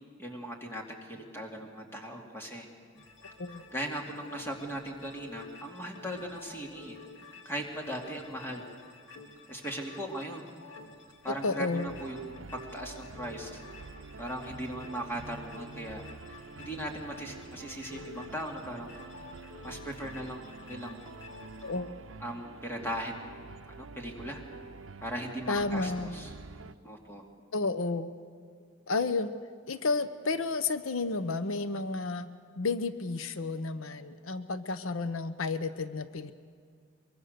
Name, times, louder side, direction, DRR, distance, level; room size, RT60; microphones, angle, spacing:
voice 1, 0.2-2.7 3.7-7.0 7.4-8.6 9.5-10.4 11.2-13.6 14.2-16.3 16.6-18.9 19.6-21.1 22.2-24.4 25.0-26.3 26.8-27.3, equal, 10° left, 1 dB, 2.5 m, -39 dB
sound 1, 2.9-21.8, left 4 dB, 65° left, 2.6 m, -50 dB
voice 2, 11.4-12.0 21.6-21.9 25.5-26.2 27.5-28.1 28.9-29.3 29.7-32.3 32.6-36.3, left 3 dB, 85° left, 12 dB, 0.8 m, -31 dB
sound 2, 11.9-26.7, right 3 dB, 75° right, 0.7 m, -47 dB
23.5 x 23.0 x 6.7 m, 2.1 s
head